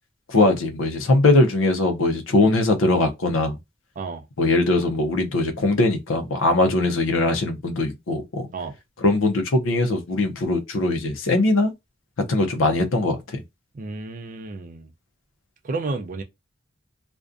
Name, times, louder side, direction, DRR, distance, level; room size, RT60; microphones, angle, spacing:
voice 1, 0.3-3.6 4.4-8.4 9.0-11.7 12.3-13.4, left 2 dB, 75° left, 0.5 m, -21 dB
voice 2, 4.0-4.3 6.7-6.8 8.5-8.8 13.7-14.9 15.6-16.2, right 3 dB, 40° right, 0.3 m, -31 dB
2.5 x 2.2 x 2.4 m
head